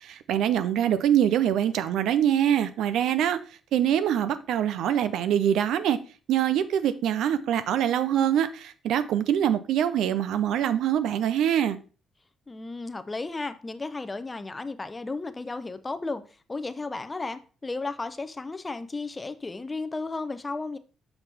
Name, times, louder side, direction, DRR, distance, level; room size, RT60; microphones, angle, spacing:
voice 1, 0.0-3.4 3.7-6.0 6.3-11.8, right 10 dB, 80° right, 0.5 m, -24 dB
voice 2, 12.5-16.2 16.5-20.8, left 3 dB, 20° left, 0.5 m, -34 dB
5.9 x 5.8 x 3.4 m
cardioid pair, 90°, 0 cm